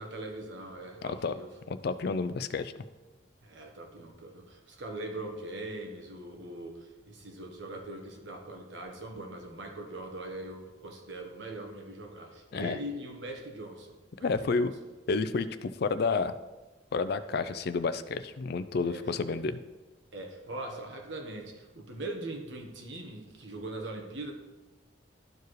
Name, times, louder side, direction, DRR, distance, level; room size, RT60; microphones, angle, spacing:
voice 1, 0.0-1.6 3.4-14.7 17.3-17.6 18.8-19.4 20.1-24.3, right 1 dB, 80° right, 3 dB, 1.2 m, -41 dB
voice 2, 1.0-1.3 1.7-2.8 12.5-12.8 14.2-14.7 15.1-16.3 16.9-19.6, left 4 dB, 55° left, 12 dB, 0.4 m, -30 dB
12.0 x 4.7 x 3.2 m, 1.1 s
head